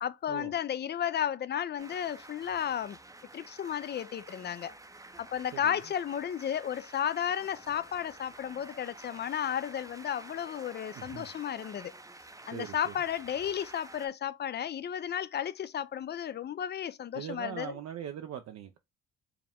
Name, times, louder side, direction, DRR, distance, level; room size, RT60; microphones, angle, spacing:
voice 1, 0.0-3.0 3.3-4.7 5.2-11.9 12.5-17.7, left 9 dB, 35° left, 0.4 m, -33 dB
sound 1, 1.8-14.1, right 2 dB, 10° right, 0.6 m, -50 dB
voice 2, 10.9-11.3 12.5-12.9 17.1-18.8, right 9 dB, 60° right, 0.6 m, -41 dB
4.8 x 2.1 x 3.5 m
cardioid pair, 90°, 30 cm